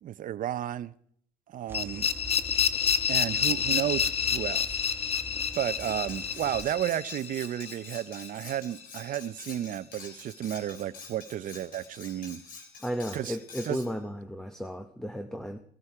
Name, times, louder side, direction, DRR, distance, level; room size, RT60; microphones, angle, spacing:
voice 1, 0.0-0.9 1.5-2.1 3.1-4.8 5.5-12.4 13.1-13.4 13.6-13.8, right 12 dB, 55° right, 0.6 m, -32 dB
sound 1, 1.7-8.6, left 7 dB, 35° left, 0.9 m, -29 dB
sound 2, 1.7-6.8, right 2 dB, 15° right, 1.4 m, -44 dB
Cutlery silverware, 5.5-13.9, left 4 dB, 55° left, 3.6 m, -47 dB
voice 2, 12.8-15.6, equal, 5° left, 0.8 m, -34 dB
15.5 x 13.0 x 4.9 m
cardioid pair, 110°, 17 cm